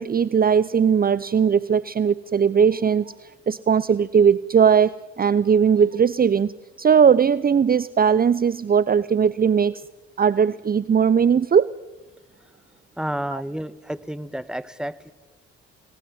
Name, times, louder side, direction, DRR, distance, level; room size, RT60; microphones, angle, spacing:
voice 1, 0.0-6.5 6.8-9.8 10.2-11.7 13.3-13.4, right 7 dB, 30° right, 18 dB, 0.7 m, -19 dB
voice 2, 13.0-15.1, right 1 dB, ahead, 13 dB, 1.6 m, -30 dB
29.5 x 19.0 x 7.9 m, 1.1 s
hypercardioid pair, 50°, 30 cm